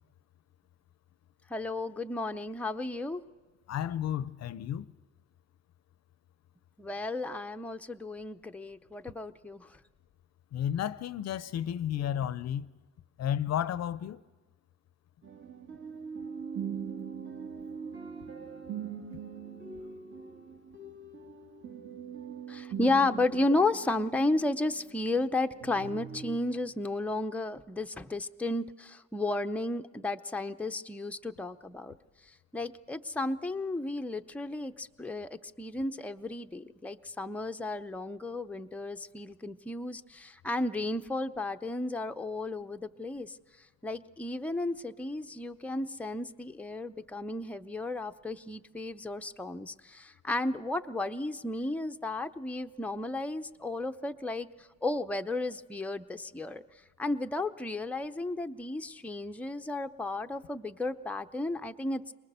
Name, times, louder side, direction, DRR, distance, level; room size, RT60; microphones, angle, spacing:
voice 1, 1.5-3.2 6.8-9.7 22.5-32.0 32.5-43.3 43.8-54.5 54.8-56.6 57.0-62.1, left 2 dB, 5° left, 0.6 m, -33 dB
voice 2, 3.7-4.9 10.5-12.7 13.2-14.2, left 10 dB, 60° left, 0.6 m, -32 dB
sound 1, 15.2-25.3 25.6-26.4, right 7 dB, 40° right, 1.9 m, -42 dB
22.5 x 20.0 x 6.8 m
cardioid pair, 90°, 30 cm